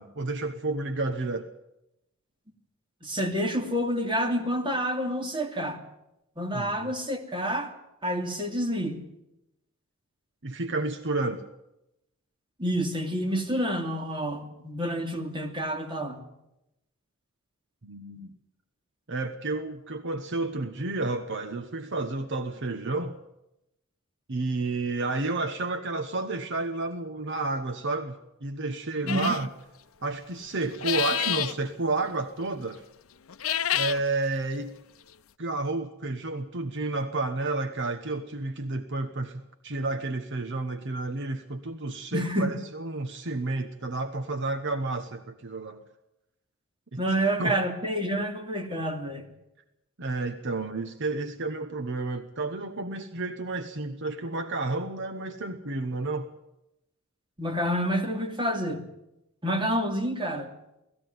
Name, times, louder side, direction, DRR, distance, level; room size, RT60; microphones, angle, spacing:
voice 1, 0.0-1.5 6.5-6.9 10.4-11.4 17.8-18.3 19.1-23.2 24.3-29.5 30.0-32.8 33.7-34.8 35.4-45.8 46.9-47.6 50.0-56.3, right 2 dB, 60° right, 8 dB, 1.2 m, -31 dB
voice 2, 3.0-5.8 6.4-7.7 8.0-9.0 12.6-16.2 29.0-29.4 42.1-42.5 47.0-49.3 57.4-58.8 59.4-60.5, equal, 25° right, 3 dB, 2.7 m, -28 dB
sound 1, 29.1-29.5 30.7-31.6 33.3-34.0, left 11 dB, 75° left, 0.7 m, -28 dB
18.5 x 15.0 x 9.4 m, 0.87 s
head